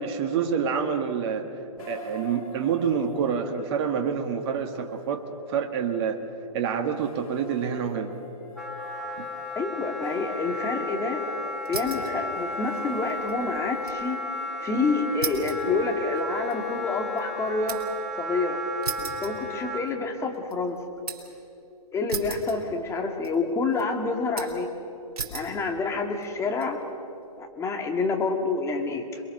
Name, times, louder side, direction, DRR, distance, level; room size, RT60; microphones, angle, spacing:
voice 1, 0.0-1.5 1.9-5.2 5.5-6.2 6.5-8.1 9.2-9.3, right 7 dB, 40° right, 4 dB, 1.8 m, -27 dB
sound 1, 1.8-20.9, left 2 dB, 65° left, 4.5 m, -45 dB
Wind instrument woodwind instrument, 8.5-19.8, left 1 dB, ahead, 2.3 m, -34 dB
voice 2, 9.6-11.2 11.7-14.2 14.6-17.8 18.2-18.6 19.2-20.8 21.9-24.7 25.3-26.8 27.4-29.2, left 3 dB, 15° left, 3 dB, 2.2 m, -28 dB
sound 2, 11.6-12.2 12.5-14.0 14.4-14.5 15.2-18.0 18.8-20.0 20.3-21.4 22.1-23.0 23.2-23.8 24.4-24.7 25.1-25.6 26.2-26.7, right 5 dB, 75° right, 4.5 m, -36 dB
27.5 x 22.0 x 6.7 m, 2.8 s
hypercardioid pair, 130°, 20 cm